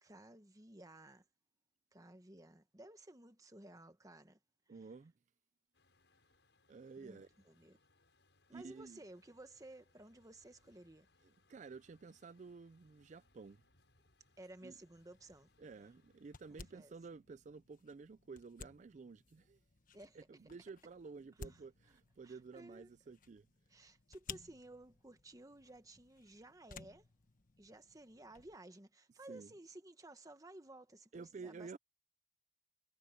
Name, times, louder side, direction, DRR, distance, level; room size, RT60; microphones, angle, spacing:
voice 1, 0.0-1.2 1.9-4.4 7.0-7.8 8.5-11.1 14.4-15.5 16.5-16.9 19.9-20.2 21.5-21.6 22.2-22.9 23.7-27.1 27.6-31.8, right 1 dB, 20° right, 1.3 m, -56 dB
voice 2, 4.7-5.1 6.7-7.3 8.5-9.0 11.2-13.6 14.6-14.7 15.6-19.6 20.1-23.5 29.3-29.5 31.1-31.8, right 4 dB, 40° right, 0.4 m, -52 dB
Truck, 5.7-16.8, left 2 dB, 85° left, 6.7 m, -74 dB
sound 1, 15.0-28.6, left 5 dB, 50° left, 1.3 m, -57 dB
head